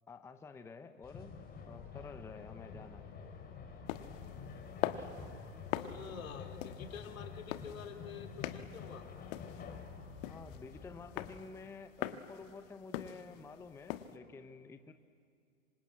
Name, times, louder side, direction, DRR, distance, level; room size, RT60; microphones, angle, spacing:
voice 1, 0.1-1.3 1.6-3.0 5.0-5.1 10.2-14.9, left 4 dB, 5° left, 9 dB, 0.8 m, -50 dB
sound 1, 1.0-11.4, left 5 dB, 20° left, 3.7 m, -49 dB
sound 2, 3.9-14.1, left 13 dB, 40° left, 1.5 m, -43 dB
voice 2, 5.7-9.1, left 7 dB, 70° left, 5 dB, 2.9 m, -47 dB
27.0 x 25.5 x 8.6 m, 2.3 s
hypercardioid pair, 120°, 42 cm